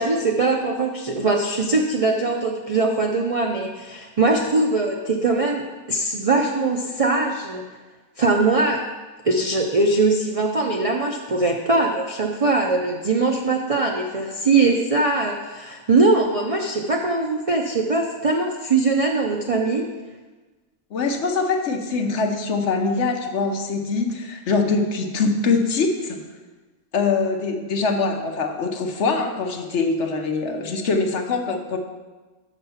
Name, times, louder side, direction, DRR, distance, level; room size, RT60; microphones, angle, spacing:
voice 1, 0.0-5.6 5.9-7.6 8.2-8.8 9.2-19.9, right 3 dB, 60° right, 2 dB, 0.3 m, -21 dB
voice 2, 20.9-26.2 26.9-31.8, left 4 dB, 60° left, 4 dB, 1.0 m, -23 dB
6.6 x 6.0 x 5.6 m, 1.2 s
omnidirectional pair, 1.5 m